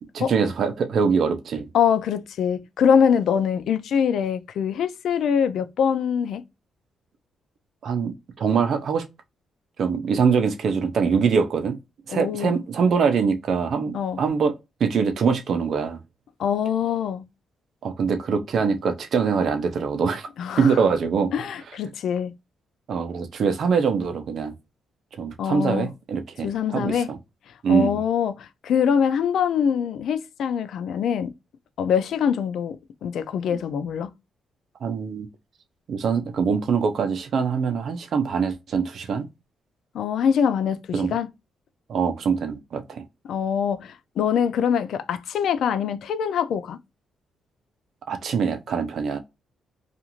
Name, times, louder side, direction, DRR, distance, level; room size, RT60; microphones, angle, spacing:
voice 1, 0.1-1.7 7.8-9.0 9.8-11.8 12.1-14.5 14.8-16.0 17.8-20.3 20.6-21.3 22.9-24.5 25.2-27.2 27.6-28.0 33.5-33.6 34.8-35.3 35.9-39.3 40.9-41.1 41.9-43.0 48.1-49.2, right 6 dB, 55° right, 0.6 m, -23 dB
voice 2, 1.7-6.4 12.1-12.6 13.9-14.2 16.4-17.2 20.4-20.8 21.3-22.3 25.4-25.9 26.4-27.1 27.7-31.3 31.8-34.1 39.9-41.3 43.3-46.8, left 7 dB, 70° left, 0.4 m, -24 dB
2.4 x 2.4 x 2.8 m
cardioid pair, 130°, 0 cm